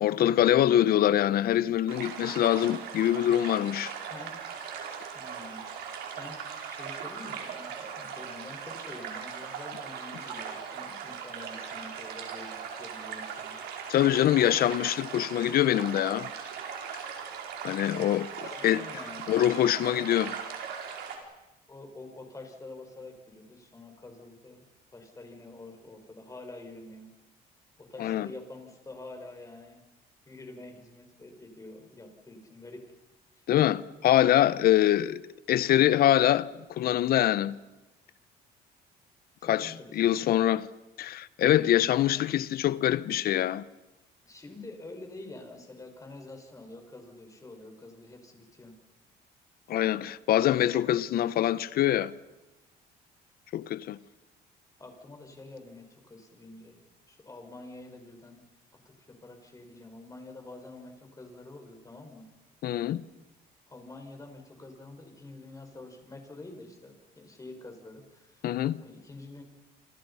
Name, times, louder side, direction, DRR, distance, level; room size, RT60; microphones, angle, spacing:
voice 1, 0.0-3.9 13.9-16.3 17.6-18.8 19.3-20.3 28.0-28.3 33.5-35.2 35.5-37.6 39.4-40.7 41.0-43.6 49.7-52.1 53.5-54.0 62.6-63.0 68.4-68.8, left 12 dB, 65° left, 1.0 m, -24 dB
sound 1, 1.9-21.2, right 7 dB, 75° right, 5.4 m, -39 dB
voice 2, 5.1-5.6 6.1-13.6 18.4-20.1 21.7-24.7 24.9-27.1 27.8-29.8 30.3-32.8 33.3-33.4 39.4-40.0 44.3-48.7 54.8-56.8 57.1-58.4 58.7-62.3 63.7-68.4 68.8-69.4, left 2 dB, 20° left, 5.8 m, -47 dB
28.5 x 27.0 x 5.7 m
cardioid pair, 110°, 17 cm